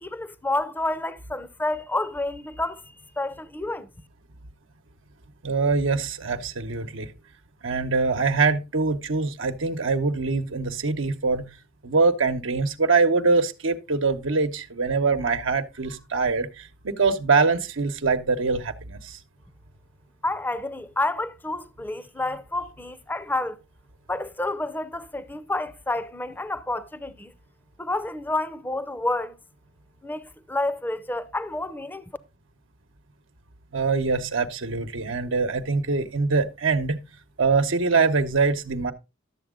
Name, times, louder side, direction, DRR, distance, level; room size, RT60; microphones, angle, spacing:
voice 1, 0.0-2.8 3.2-3.9 20.2-23.6 24.1-27.3 27.8-29.4 30.0-32.0, left 2 dB, 10° left, 0.6 m, -29 dB
voice 2, 5.4-7.1 7.6-11.5 11.8-19.2 33.7-37.0 37.4-38.9, right 4 dB, 85° right, 1.0 m, -23 dB
12.0 x 7.3 x 3.7 m
head